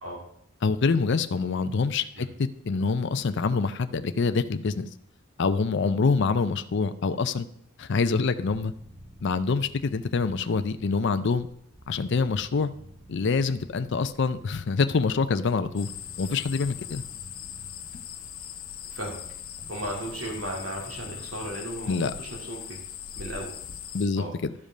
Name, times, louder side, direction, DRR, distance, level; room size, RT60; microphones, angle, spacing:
voice 1, 0.6-4.9 5.4-7.5 7.8-8.7 9.2-11.5 11.9-12.7 13.1-15.9 16.2-17.0 21.9-22.1 23.9-24.5, left 4 dB, 55° left, 10 dB, 0.5 m, -25 dB
sound 1, 8.5-21.7, equal, 25° right, 1.1 m, -50 dB
sound 2, 15.8-24.1, left 9 dB, 85° left, 0.9 m, -40 dB
voice 2, 18.9-19.2 19.7-22.8 23.2-23.6 24.1-24.3, right 1 dB, 70° right, -3 dB, 2.4 m, -35 dB
12.5 x 5.3 x 5.0 m, 0.75 s
head